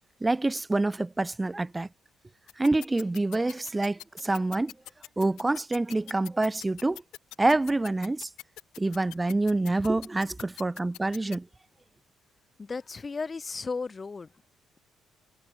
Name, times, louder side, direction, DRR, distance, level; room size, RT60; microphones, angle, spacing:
voice 1, 0.2-1.9 2.6-4.7 5.2-7.0 7.4-8.3 8.8-11.5, right 2 dB, 15° right, 1.0 m, -27 dB
sound 1, 2.5-11.4, left 16 dB, 90° left, 2.7 m, -43 dB
voice 2, 12.6-14.3, left 4 dB, 25° left, 4.6 m, -34 dB
cardioid pair, 115°, 0 cm